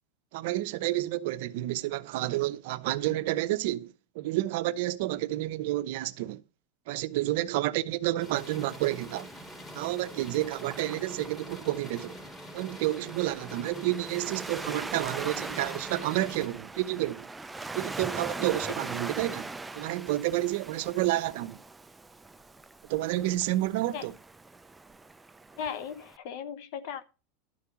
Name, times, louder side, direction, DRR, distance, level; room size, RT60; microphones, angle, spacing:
voice 1, 0.3-6.4 6.9-9.3 9.7-12.2 12.5-17.3 17.7-21.6 22.9-24.1, right 16 dB, 65° right, 0.8 m, -30 dB
sound 1, 8.2-16.5, left 1 dB, 10° left, 3.1 m, -45 dB
Waves surf, 8.3-26.2, right 3 dB, 10° right, 0.5 m, -42 dB
voice 2, 25.6-27.0, left 7 dB, 60° left, 1.0 m, -37 dB
12.0 x 4.7 x 7.0 m
supercardioid pair, 135°, 0 cm